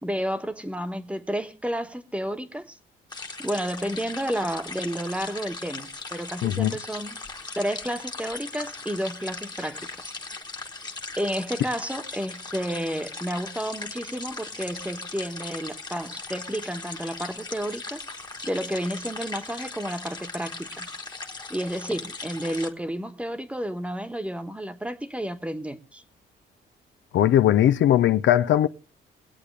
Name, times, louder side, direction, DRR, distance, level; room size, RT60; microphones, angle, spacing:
voice 1, 0.0-2.8 3.4-7.2 7.5-9.9 11.2-18.0 18.4-20.9 21.5-26.0, equal, 5° right, 1.2 m, -31 dB
sound 1, 3.1-22.7, left 3 dB, 20° left, 1.4 m, -38 dB
voice 2, 6.4-6.7 27.1-28.7, left 11 dB, 70° left, 0.6 m, -19 dB
23.0 x 8.4 x 3.3 m
cardioid pair, 90°, 20 cm